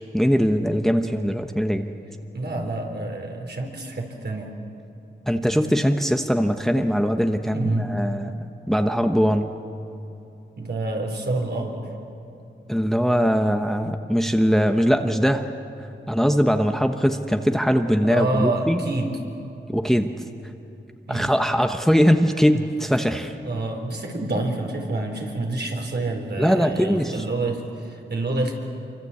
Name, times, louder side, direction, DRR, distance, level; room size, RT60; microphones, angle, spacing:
voice 1, 0.1-2.0 5.3-8.3 8.7-9.5 12.7-15.4 16.1-18.8 19.7-20.1 21.1-23.3 26.4-27.2, equal, ahead, 6 dB, 1.1 m, -21 dB
voice 2, 2.3-4.6 7.5-7.9 10.6-11.9 18.0-19.1 21.1-21.3 22.5-22.6 23.4-28.5, right 2 dB, 60° right, 2 dB, 4.0 m, -27 dB
26.0 x 24.5 x 8.5 m, 2.8 s
wide cardioid pair, 90°, 19 cm